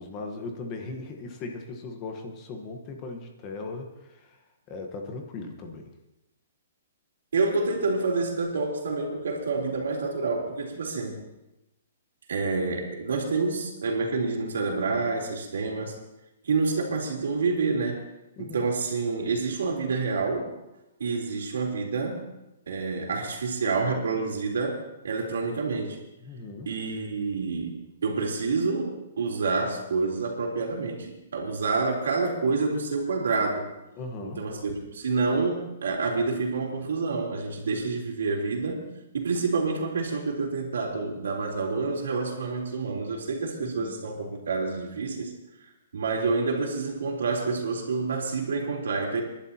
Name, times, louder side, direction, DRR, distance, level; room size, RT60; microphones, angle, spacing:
voice 1, 0.0-4.4 4.7-5.9 18.4-18.7 26.2-26.7 34.0-34.5 43.6-44.0, left 3 dB, 20° left, 3 dB, 1.2 m, -38 dB
voice 2, 7.3-11.2 12.3-15.9 16.4-18.0 18.4-20.6 21.0-22.2 22.7-26.0 26.6-33.7 34.2-45.3 45.9-49.2, right 4 dB, 90° right, 0 dB, 3.5 m, -28 dB
29.5 x 11.5 x 2.9 m, 0.93 s
hypercardioid pair, 180°, 0 cm